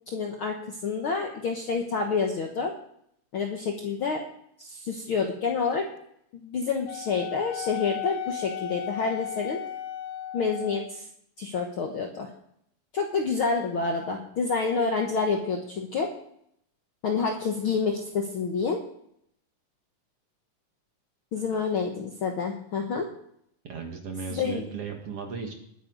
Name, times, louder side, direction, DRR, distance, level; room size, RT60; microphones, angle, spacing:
voice 1, 0.1-2.7 3.3-4.2 4.6-5.9 6.3-9.6 10.3-11.0 11.4-12.3 12.9-16.1 17.0-18.8 21.3-23.1 24.3-24.6, left 5 dB, 60° left, 2 dB, 1.4 m, -28 dB
Wind instrument woodwind instrument, 6.9-11.0, left 11 dB, 85° left, 2.3 m, -35 dB
voice 2, 21.4-21.7 23.6-25.5, right 5 dB, 50° right, 3 dB, 2.3 m, -36 dB
20.0 x 9.6 x 4.0 m, 0.71 s
omnidirectional pair, 3.8 m